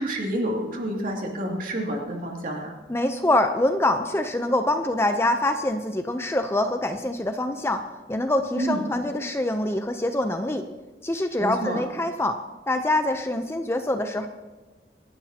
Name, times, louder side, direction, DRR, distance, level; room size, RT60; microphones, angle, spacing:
voice 1, 0.0-2.7 8.6-8.8 11.4-11.8, right 1 dB, 50° right, 0 dB, 2.6 m, -28 dB
voice 2, 2.9-7.8 8.1-10.6 11.0-12.4 12.7-14.3, left 1 dB, 15° left, 6 dB, 0.6 m, -25 dB
26.0 x 11.5 x 2.9 m, 1.2 s
head